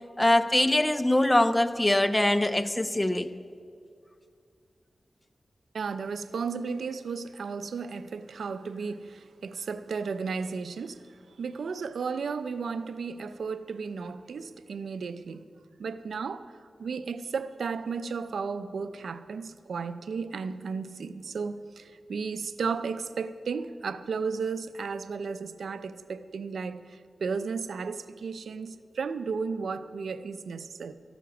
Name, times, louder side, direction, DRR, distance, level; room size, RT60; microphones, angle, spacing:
voice 1, 0.2-3.3, left 1 dB, 20° left, 0.7 m, -23 dB
voice 2, 5.7-15.5 15.8-30.9, right 5 dB, 90° right, 0.5 m, -34 dB
14.5 x 12.0 x 5.9 m
cardioid pair, 50°, 0 cm